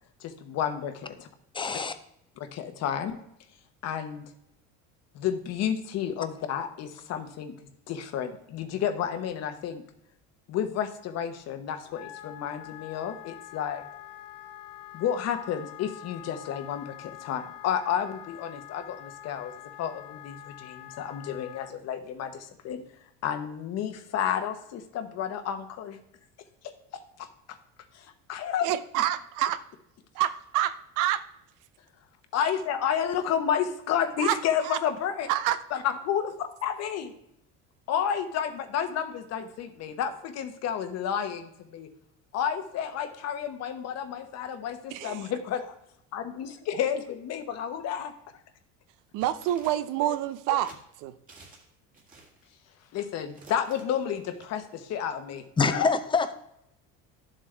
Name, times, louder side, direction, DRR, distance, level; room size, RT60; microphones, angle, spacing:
voice 1, 0.2-1.3 2.4-3.2 3.8-4.3 5.1-7.6 7.9-9.8 10.5-13.8 14.9-19.5 19.8-22.8 23.2-26.0 26.6-26.7 27.2-27.6 27.9-28.7 32.3-35.3 35.7-37.1 37.9-41.9 42.3-45.7 46.1-48.1 50.1-50.2 52.9-55.9, left 8 dB, 50° left, 8 dB, 1.1 m, -31 dB
voice 2, 1.5-1.9 55.6-56.3, left 4 dB, 15° left, 10 dB, 0.6 m, -25 dB
Wind instrument woodwind instrument, 11.8-21.7, left 14 dB, 75° left, 0.7 m, -45 dB
voice 3, 28.6-29.6 30.1-31.2 34.2-34.4 34.6-34.8 35.3-35.6 44.9-45.3 49.1-50.7 51.0-51.2, right 13 dB, 70° right, 13 dB, 0.7 m, -27 dB
sound 1, 49.2-50.1 50.6-50.8 51.3-51.7 51.9-52.5 53.2-54.4, right 3 dB, 25° right, 1.8 m, -52 dB
11.5 x 7.6 x 3.3 m, 0.76 s
cardioid pair, 135°, 32 cm